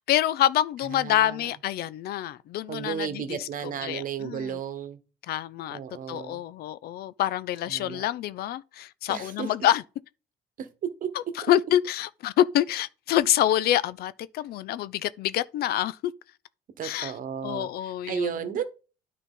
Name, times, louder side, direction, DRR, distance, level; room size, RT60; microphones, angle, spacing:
voice 1, 0.0-4.6 5.3-5.8 6.1-9.8 11.5-16.1 16.8-17.1 17.4-18.3, left 12 dB, 70° left, 0.5 m, -26 dB
voice 2, 0.9-1.5 2.7-5.0 5.7-6.4 7.7-8.1 9.1-9.5 10.6-10.7 11.0-11.1 16.8-18.6, right 8 dB, 55° right, 1.2 m, -34 dB
9.9 x 4.2 x 3.8 m
cardioid pair, 110°, 17 cm